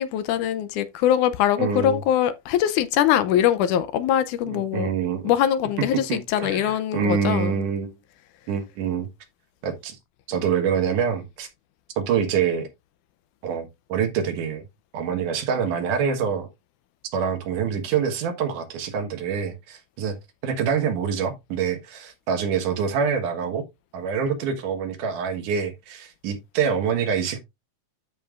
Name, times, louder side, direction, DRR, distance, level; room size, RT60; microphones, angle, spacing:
voice 1, 0.0-4.9 5.2-7.6, left 10 dB, 80° left, 2.1 m, -22 dB
voice 2, 1.6-2.0 4.5-5.2 6.1-7.9 8.5-9.1 9.6-10.0 10.3-11.5 12.0-12.7 13.4-14.6 14.9-16.5 17.1-20.2 20.4-23.6 23.9-27.4, right 7 dB, 75° right, 2.9 m, -26 dB
12.5 x 5.3 x 2.4 m
omnidirectional pair, 3.6 m